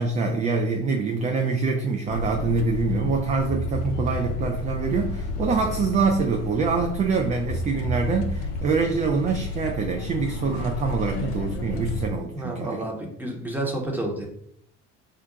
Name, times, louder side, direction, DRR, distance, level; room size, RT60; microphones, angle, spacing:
voice 1, 0.0-12.9, right 4 dB, 20° right, 4 dB, 0.3 m, -25 dB
sound 1, 2.1-12.1, left 2 dB, 75° left, 0.5 m, -31 dB
voice 2, 12.3-14.3, right 1 dB, 5° right, -1 dB, 0.9 m, -30 dB
2.5 x 2.2 x 3.8 m, 0.71 s
figure-of-eight pair, 55°, 37 cm